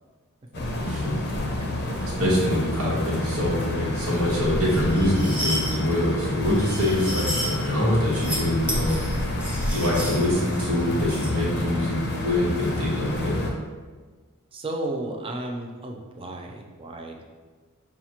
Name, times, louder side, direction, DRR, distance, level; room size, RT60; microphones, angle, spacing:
sound 1, 0.5-13.5, left 1 dB, 50° left, 0.5 m, -29 dB
voice 1, 0.8-1.2 2.2-9.0 9.7-13.4, left 1 dB, 75° right, -6 dB, 1.2 m, -24 dB
voice 2, 1.6-2.0 14.5-17.2, right 2 dB, 25° right, 2 dB, 0.4 m, -33 dB
sound 2, 4.7-5.7 6.5-7.6 8.0-8.4 8.7-11.3, equal, 5° right, 0.9 m, -32 dB
5.7 x 2.4 x 2.8 m, 1.4 s
head